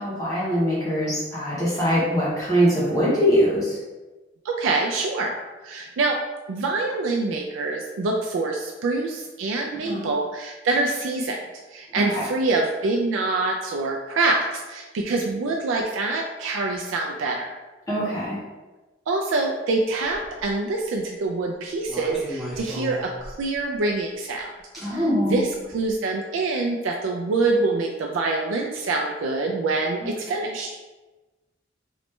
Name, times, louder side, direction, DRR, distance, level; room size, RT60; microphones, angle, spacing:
voice 1, 0.0-3.8 9.8-10.1 11.9-12.2 17.9-18.4 24.8-25.4 30.0-30.1, equal, 20° left, -9 dB, 0.8 m, -23 dB
voice 2, 4.4-5.4 5.6-6.2 6.5-11.4 11.7-17.5 19.1-24.5 24.8-25.0 25.3-30.7, right 3 dB, 80° right, 1 dB, 0.3 m, -25 dB
sound 1, 20.0-20.5 21.8-23.6 24.7-24.9 25.7-25.9, equal, ahead, 1.0 m, -35 dB
3.2 x 3.0 x 3.1 m, 1.2 s
head